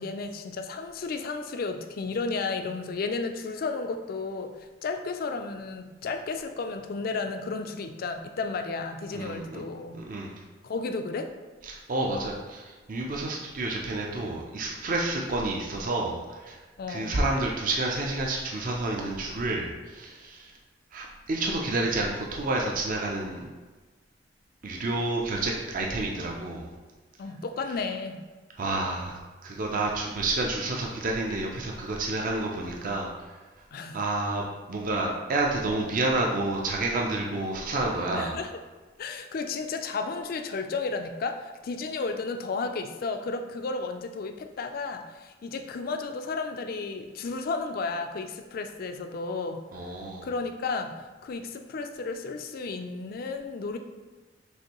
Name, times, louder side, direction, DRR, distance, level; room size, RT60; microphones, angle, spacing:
voice 1, 0.0-4.5 4.8-10.0 10.6-11.3 16.8-17.1 27.2-28.2 33.7-34.0 38.1-38.5 39.0-49.6 50.2-53.8, left 4 dB, 55° left, 7 dB, 0.4 m, -33 dB
voice 2, 9.1-9.6 9.9-10.4 11.6-16.6 16.9-20.6 20.9-23.5 24.6-26.7 28.6-33.6 33.9-38.4 49.7-50.3, right 2 dB, 50° right, -1 dB, 0.5 m, -29 dB
6.3 x 2.6 x 2.9 m, 1.3 s
head